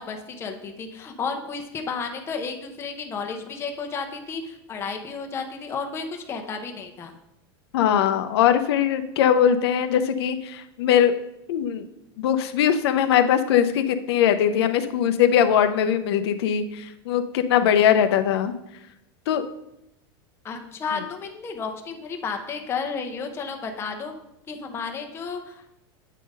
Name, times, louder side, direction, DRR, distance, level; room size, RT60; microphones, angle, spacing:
voice 1, 0.0-7.1 20.4-24.1 24.5-25.6, left 5 dB, 20° left, 4 dB, 0.7 m, -32 dB
voice 2, 7.7-11.1 11.5-11.8 12.2-18.6 19.3-19.4, left 9 dB, 80° left, 9 dB, 0.6 m, -21 dB
8.3 x 3.8 x 5.3 m, 0.86 s
supercardioid pair, 155°, 13 cm